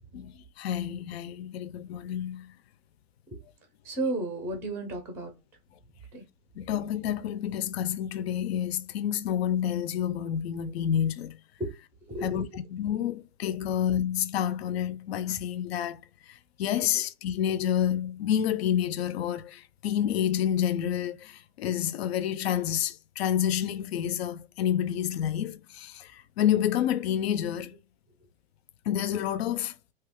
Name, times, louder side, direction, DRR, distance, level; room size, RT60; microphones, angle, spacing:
voice 1, 0.1-2.5 6.6-11.4 12.2-16.0 16.3-27.7 28.9-29.8, left 10 dB, 90° left, 0.5 m, -29 dB
voice 2, 3.8-5.3 6.1-6.2 11.6-11.7 12.1-12.4, right 2 dB, 5° right, 0.4 m, -33 dB
2.9 x 2.3 x 3.4 m
supercardioid pair, 165°, 30 cm